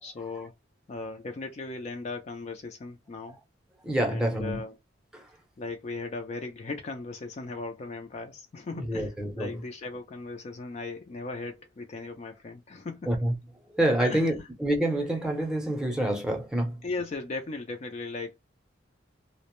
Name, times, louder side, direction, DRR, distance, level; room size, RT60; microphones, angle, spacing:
voice 1, 0.0-0.5 0.9-3.4 4.0-4.8 5.6-13.2 14.0-14.5 16.8-18.4, left 3 dB, 35° left, 0.4 m, -37 dB
voice 2, 3.8-4.6 5.1-5.2 8.7-9.6 13.1-13.3 13.7-16.8, right 1 dB, 5° right, 0.6 m, -27 dB
2.5 x 2.0 x 2.9 m
head